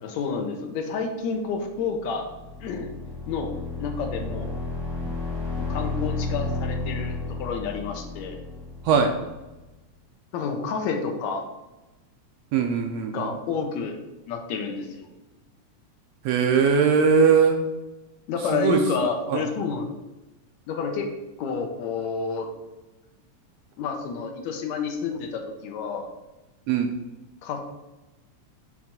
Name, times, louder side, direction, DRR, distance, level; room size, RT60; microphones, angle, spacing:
voice 1, 0.0-2.3 2.6-2.9 3.3-3.5 3.8-4.5 5.6-8.4 10.3-11.4 13.1-14.0 14.3-15.1 18.3-19.9 20.7-21.1 21.4-22.5 23.8-26.1 27.4-27.6, left 5 dB, 75° left, 4 dB, 2.0 m, -29 dB
sound 1, 1.8-9.6, left 3 dB, 50° right, 2.6 m, -32 dB
voice 2, 12.5-13.3 16.2-17.6 18.5-18.8 19.3-19.4 26.7-26.9, right 6 dB, 75° right, 4 dB, 1.6 m, -20 dB
7.1 x 3.2 x 5.9 m, 1.1 s
omnidirectional pair, 3.4 m